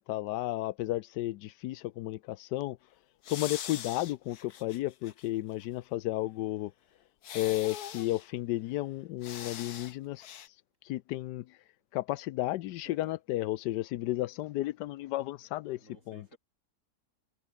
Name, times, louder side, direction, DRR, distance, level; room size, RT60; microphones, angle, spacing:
voice 1, 0.0-2.8 3.3-6.7 7.3-10.4 10.8-11.6 11.9-15.8 16.1-16.3, left 16 dB, 85° left, 1.2 m, -33 dB
sound 1, 3.2-5.3 5.6-5.7 7.2-8.3 9.2-9.9 10.2-10.5, left 9 dB, 70° left, 1.6 m, -42 dB
voice 2, 12.8-13.2 15.7-16.4, right 2 dB, 45° right, 6.3 m, -55 dB
omnidirectional pair, 1.8 m